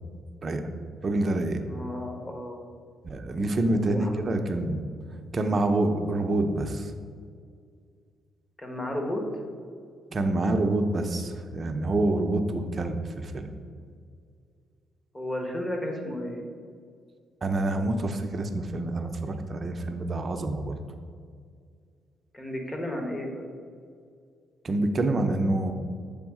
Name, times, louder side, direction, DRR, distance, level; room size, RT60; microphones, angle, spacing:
voice 1, 1.0-1.6 3.0-4.8 5.3-6.9 10.1-13.5 17.4-20.7 24.6-25.7, right 2 dB, 35° right, 5 dB, 0.6 m, -27 dB
voice 2, 1.7-2.6 3.6-4.1 8.6-9.2 15.1-16.5 22.3-23.5, left 1 dB, 20° left, 2 dB, 1.1 m, -33 dB
7.0 x 3.5 x 4.8 m, 2.2 s
cardioid pair, 90°, 0 cm